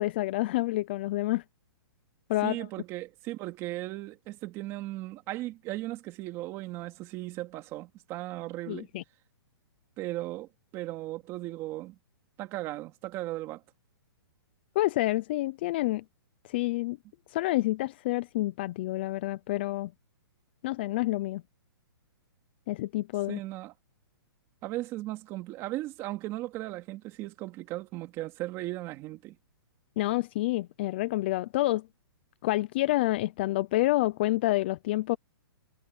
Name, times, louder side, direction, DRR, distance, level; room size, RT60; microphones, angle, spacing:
voice 1, 0.0-1.4 2.3-2.7 8.7-9.0 14.8-16.0 16.5-17.0 17.3-19.9 20.6-21.4 22.7-23.4 30.0-31.8 32.4-35.2, left 17 dB, 25° left, 0.4 m, -28 dB
voice 2, 2.4-8.9 10.0-12.0 12.4-13.6 23.3-23.7 24.6-29.4, right 17 dB, 20° right, 2.4 m, -37 dB
hypercardioid pair, 165°, 13 cm